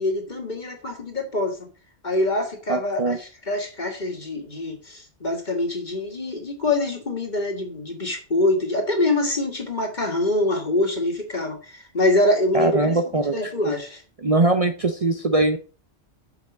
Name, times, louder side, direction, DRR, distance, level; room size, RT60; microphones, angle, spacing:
voice 1, 0.0-1.7 2.0-14.0, left 2 dB, 40° left, 3 dB, 2.4 m, -25 dB
voice 2, 2.7-3.2 12.5-13.7 14.2-15.6, right 2 dB, 35° right, 6 dB, 0.8 m, -22 dB
7.0 x 6.0 x 7.2 m, 0.36 s
omnidirectional pair, 1.2 m